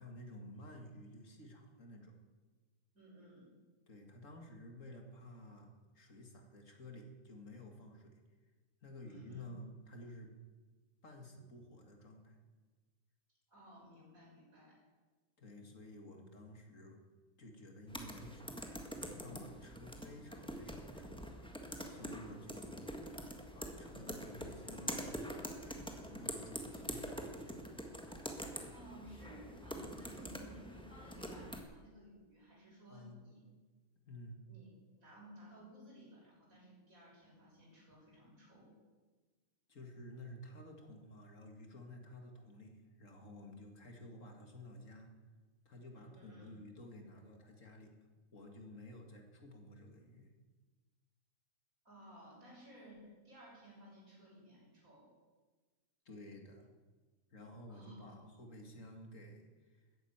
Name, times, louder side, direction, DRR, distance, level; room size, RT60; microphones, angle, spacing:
voice 1, 0.0-2.2 3.9-8.2 8.8-10.3 11.0-12.4 15.4-17.0 17.4-22.8 23.5-27.6 32.9-33.2 34.1-34.4 39.7-45.1 45.7-48.0 48.3-50.3 56.1-56.7 57.3-59.9, left 1 dB, 65° left, 3 dB, 2.6 m, -53 dB
voice 2, 2.9-3.5 9.0-9.4 13.5-14.8 28.4-33.4 34.5-38.8 45.9-46.6 51.8-55.1 57.7-58.2, right 1 dB, 80° right, -4 dB, 6.8 m, -57 dB
sound 1, 17.9-31.6, equal, 5° left, 1.5 m, -45 dB
14.0 x 10.5 x 8.9 m, 1.3 s
omnidirectional pair, 1.4 m